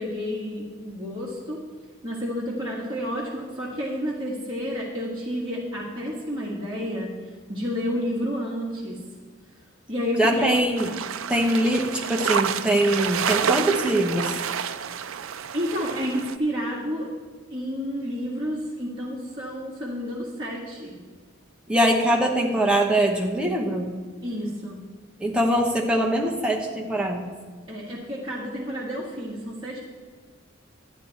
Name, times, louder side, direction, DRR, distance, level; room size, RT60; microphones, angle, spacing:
voice 1, 0.0-1.6 2.0-7.1 7.5-9.0 9.9-10.5 15.5-17.1 17.5-21.0 22.5-22.6 24.2-24.8 27.7-29.8, equal, 25° right, -7 dB, 1.8 m, -30 dB
voice 2, 10.2-10.9 11.3-14.4 21.7-23.9 25.2-27.3, right 1 dB, 5° right, -1 dB, 0.9 m, -22 dB
sound 1, 10.8-16.4, right 7 dB, 80° right, 0.4 m, -29 dB
12.0 x 9.3 x 4.2 m, 1.5 s
head